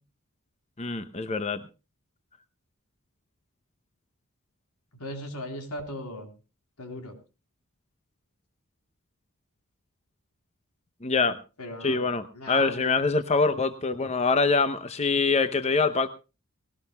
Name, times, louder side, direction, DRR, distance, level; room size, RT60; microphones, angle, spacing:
voice 1, 0.8-1.6 11.0-11.4 11.8-16.1, left 4 dB, 30° left, 10 dB, 0.7 m, -24 dB
voice 2, 5.0-6.3 6.8-7.1 11.6-13.0, left 1 dB, 90° left, 6 dB, 3.7 m, -38 dB
19.0 x 18.5 x 2.3 m, 0.31 s
head